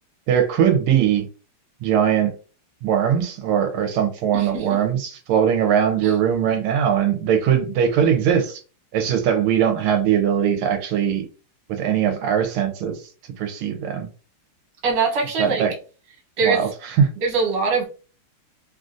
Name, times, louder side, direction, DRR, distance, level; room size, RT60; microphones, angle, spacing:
voice 1, 0.3-1.2 1.8-2.3 2.8-8.6 8.9-11.2 11.7-13.0 13.4-14.1 15.4-15.7 16.4-17.1, right 8 dB, 85° right, 1.5 m, -20 dB
voice 2, 4.3-4.8 6.0-6.1 14.8-15.6 16.4-16.7 17.2-17.9, right 4 dB, 60° right, 1.6 m, -22 dB
3.7 x 2.5 x 2.5 m
omnidirectional pair, 2.4 m